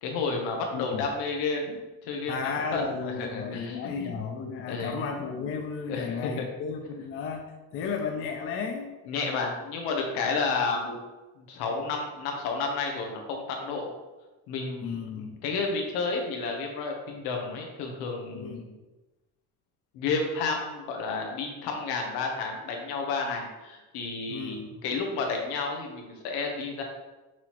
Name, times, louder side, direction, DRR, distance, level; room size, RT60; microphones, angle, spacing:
voice 1, 0.0-1.8 2.0-4.1 4.7-5.0 5.9-6.4 9.1-11.0 11.4-13.9 14.5-15.0 15.4-18.7 19.9-26.8, left 4 dB, 75° left, 2 dB, 1.1 m, -31 dB
voice 2, 0.7-1.1 1.7-1.8 2.3-9.0 14.8-15.4 18.3-18.6 24.3-24.8, left 5 dB, 35° left, 5 dB, 0.4 m, -34 dB
6.0 x 2.8 x 3.0 m, 1.1 s
cardioid pair, 105°, 39 cm